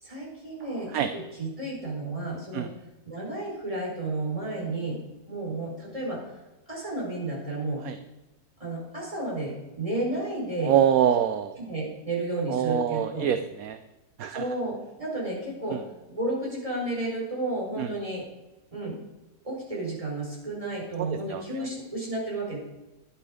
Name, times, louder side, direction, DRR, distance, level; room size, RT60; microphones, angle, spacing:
voice 1, 0.0-2.7 3.0-5.0 5.3-6.2 6.7-7.8 8.6-10.7 11.6-13.3 14.3-18.2 18.7-18.9 19.4-22.6, right 2 dB, 20° right, -3 dB, 4.7 m, -32 dB
sound 1, 0.6-1.2, right 1 dB, 45° right, 3.3 m, -53 dB
voice 2, 10.6-11.6 12.5-13.8 14.2-14.5 15.7-15.8 17.8-17.9 21.0-21.7, right 9 dB, 65° right, 9 dB, 1.0 m, -25 dB
11.5 x 10.5 x 5.0 m, 1.0 s
omnidirectional pair, 1.7 m